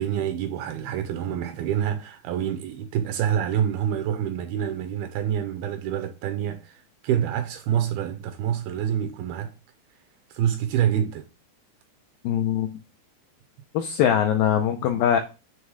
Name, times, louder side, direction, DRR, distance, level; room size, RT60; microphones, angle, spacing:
voice 1, 0.0-9.5 10.3-11.3, right 9 dB, 80° right, 2.2 m, -27 dB
voice 2, 12.2-12.7 13.7-15.2, left 9 dB, 85° left, 2.0 m, -22 dB
7.6 x 3.1 x 4.7 m
omnidirectional pair, 4.8 m